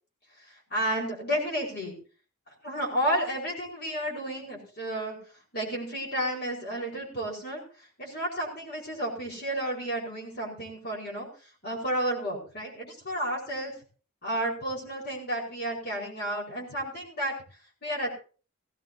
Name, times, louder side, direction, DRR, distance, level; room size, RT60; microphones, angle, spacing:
voice 1, 0.4-1.9 2.5-5.2 5.5-13.7 14.2-17.3 17.8-18.1, right 1 dB, 45° left, -1 dB, 4.7 m, -32 dB
17.5 x 16.0 x 2.8 m, 0.37 s
head